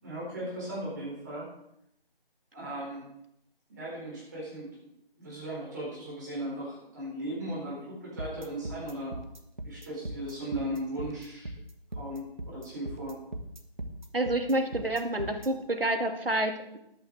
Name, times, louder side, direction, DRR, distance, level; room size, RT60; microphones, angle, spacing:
voice 1, 0.0-1.5 2.5-3.0 3.7-4.7 5.2-9.2 9.6-11.5 11.9-13.2, right 1 dB, 20° right, -6 dB, 4.2 m, -37 dB
sound 1, 8.2-15.5, right 1 dB, 50° right, 1.5 m, -39 dB
voice 2, 14.1-16.8, right 1 dB, 70° right, 5 dB, 2.0 m, -28 dB
19.0 x 9.1 x 3.5 m, 0.78 s
figure-of-eight pair, 165°, 30 cm